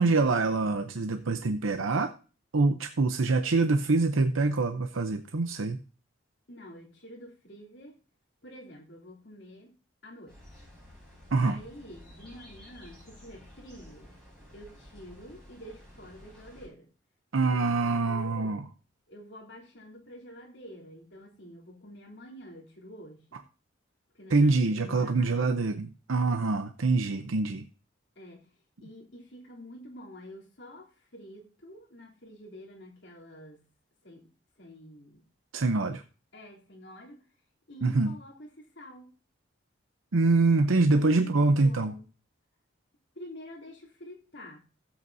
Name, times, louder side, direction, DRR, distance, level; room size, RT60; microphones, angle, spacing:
voice 1, 0.0-2.1 2.5-5.8 11.3-11.6 17.3-18.6 24.3-27.7 35.5-36.0 37.8-38.1 40.1-41.9, right 3 dB, 90° right, 8 dB, 0.7 m, -25 dB
voice 2, 6.5-8.0 8.4-9.8 10.0-10.7 11.4-14.2 14.5-16.9 17.5-18.6 19.1-23.4 24.1-25.5 28.1-28.5 28.8-33.6 34.0-34.3 34.6-35.2 36.3-37.2 37.7-39.1 40.9-42.1 43.1-44.6, equal, 65° left, -2 dB, 3.2 m, -48 dB
sound 1, 10.3-16.7, equal, 5° left, 5.5 m, -52 dB
15.5 x 8.1 x 2.7 m, 0.35 s
head